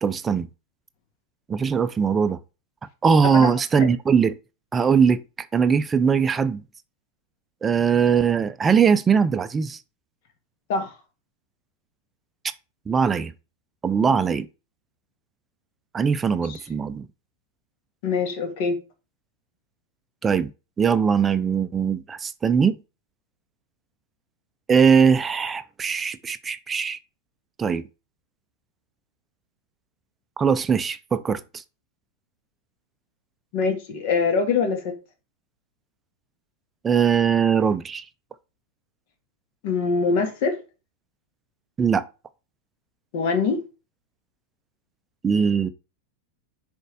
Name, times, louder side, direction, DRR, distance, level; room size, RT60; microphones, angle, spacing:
voice 1, 0.0-0.5 1.5-2.4 3.0-4.4 4.7-5.2 5.5-6.6 7.6-9.8 12.9-13.3 13.8-14.5 15.9-17.1 20.2-20.5 20.8-22.8 24.7-27.0 27.6-27.9 30.4-31.4 36.8-38.0 41.8-42.0 45.2-45.7, right 6 dB, 20° right, 0.6 m, -20 dB
voice 2, 3.3-3.9 10.7-10.9 16.5-16.6 18.0-18.8 33.5-34.9 39.6-40.6 43.1-43.6, left 4 dB, 50° left, 1.7 m, -24 dB
6.6 x 4.4 x 4.8 m
figure-of-eight pair, 90°, 0 cm